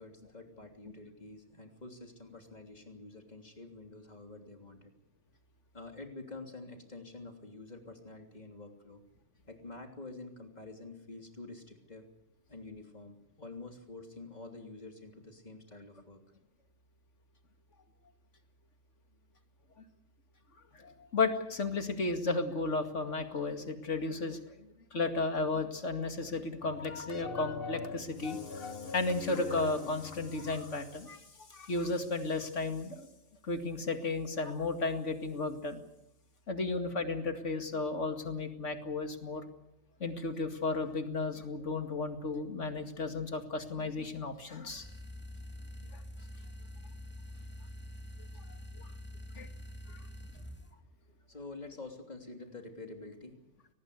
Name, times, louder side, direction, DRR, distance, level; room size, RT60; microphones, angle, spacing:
voice 1, 0.0-4.9 5.7-9.0 9.5-12.1 12.5-16.2 49.1-49.3 49.9-50.0 51.1-53.4, left 3 dB, 35° left, 4 dB, 3.2 m, -48 dB
voice 2, 20.8-24.4 24.9-31.2 31.5-33.1 33.5-35.8 36.5-39.4 40.0-44.9 45.9-46.0 48.8-48.9 49.4-49.5 49.9-50.0, left 3 dB, 85° left, 7 dB, 2.6 m, -34 dB
sound 1, 26.6-31.0, left 5 dB, 55° left, 1.5 m, -42 dB
sound 2, 44.7-50.7, left 1 dB, 10° left, 2.6 m, -46 dB
24.5 x 19.5 x 8.1 m, 0.80 s
omnidirectional pair, 1.2 m